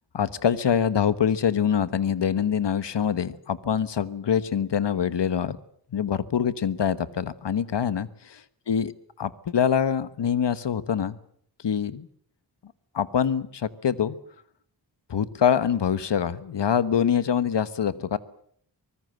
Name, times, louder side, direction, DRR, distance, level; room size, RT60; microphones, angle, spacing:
voice 1, 0.1-5.6 5.9-8.4 8.7-8.9 9.2-11.2 11.6-12.1 12.9-14.2 15.1-18.2, left 8 dB, 75° left, 15 dB, 1.3 m, -24 dB
24.0 x 20.0 x 7.9 m, 0.64 s
wide cardioid pair, 75°, 42 cm